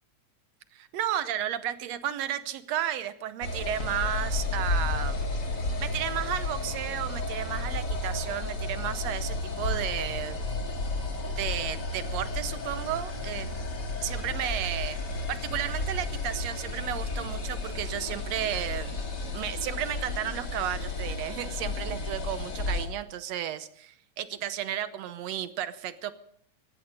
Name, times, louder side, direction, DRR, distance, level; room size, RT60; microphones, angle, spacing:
voice 1, 0.7-5.3 5.8-10.4 11.2-13.5 14.0-19.0 19.3-26.1, right 11 dB, 70° right, 12 dB, 1.9 m, -33 dB
sound 1, 3.4-22.9, left 2 dB, 35° left, 2.6 m, -32 dB
17.0 x 15.0 x 5.4 m, 0.67 s
omnidirectional pair, 3.4 m